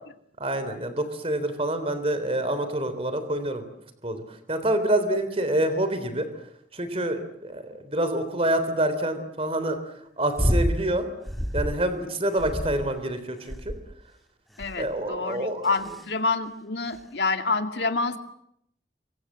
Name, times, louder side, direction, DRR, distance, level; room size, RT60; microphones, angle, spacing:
voice 1, 0.4-3.6 4.0-6.3 6.7-9.8 10.2-11.1 11.5-13.7 14.8-15.7, right 1 dB, 30° right, 10 dB, 3.6 m, -27 dB
sound 1, 10.4-10.8 11.2-11.8 12.4-13.0 13.5-14.0 14.6-14.9 15.6-16.0 16.9-17.0, equal, ahead, 1.6 m, -27 dB
voice 2, 14.6-18.2, left 3 dB, 65° left, 7 dB, 2.4 m, -27 dB
28.0 x 24.5 x 7.6 m, 0.74 s
head